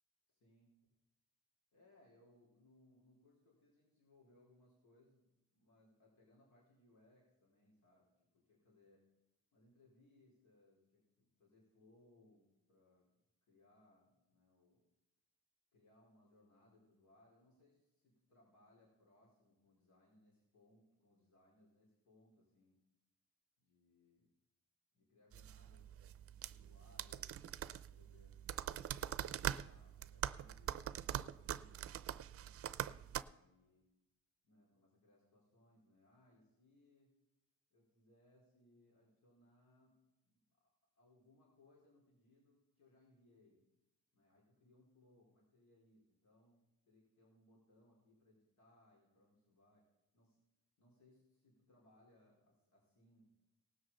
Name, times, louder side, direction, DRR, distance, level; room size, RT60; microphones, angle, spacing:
voice 1, 0.3-0.7 1.7-9.0 9.5-13.1 13.4-14.8 15.7-22.8 23.6-24.3 24.9-27.4 27.9-32.6 33.3-33.9 34.4-37.1 37.7-40.0 40.2-43.6 44.1-49.9 50.1-50.4 50.8-53.5, left 1 dB, 70° left, -4 dB, 4.3 m, -70 dB
sound 1, 25.3-33.2, right 11 dB, 50° right, 0.6 m, -43 dB
18.5 x 6.5 x 5.5 m, 0.98 s
cardioid pair, 90°, 30 cm